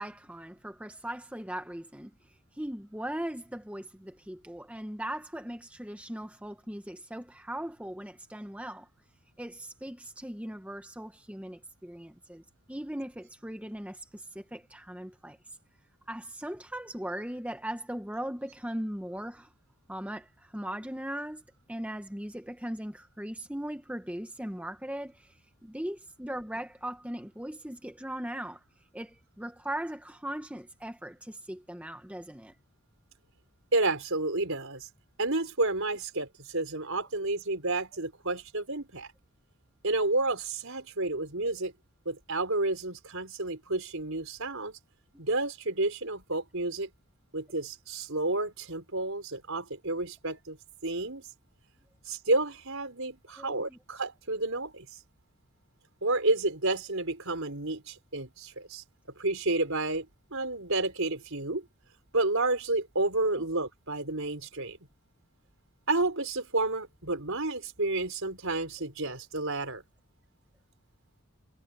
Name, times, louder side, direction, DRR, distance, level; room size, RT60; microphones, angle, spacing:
voice 1, 0.0-2.1 2.5-8.9 9.4-15.4 16.1-19.5 19.9-21.4 21.7-25.3 25.6-28.6 28.9-32.5 53.4-53.8, right 1 dB, 5° right, 1.1 m, -39 dB
voice 2, 33.7-34.9 35.2-39.1 39.8-41.7 42.0-44.8 45.2-46.9 47.3-50.6 50.8-51.2 52.0-54.9 56.0-58.8 59.2-60.1 60.3-61.6 62.1-64.8 65.9-69.8, right 2 dB, 65° right, 4.8 m, -30 dB
head